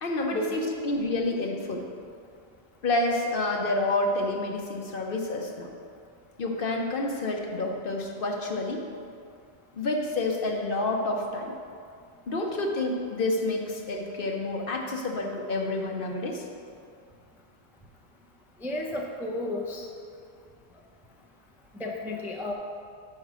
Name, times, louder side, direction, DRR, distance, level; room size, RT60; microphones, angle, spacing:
voice 1, 0.0-1.9 2.8-5.7 6.4-8.9 9.7-11.5 12.3-16.4, left 2 dB, 60° left, 2 dB, 0.9 m, -29 dB
voice 2, 18.6-19.9 21.8-22.5, left 2 dB, 5° right, -1 dB, 0.4 m, -33 dB
6.1 x 5.6 x 6.0 m, 2.3 s
omnidirectional pair, 1.1 m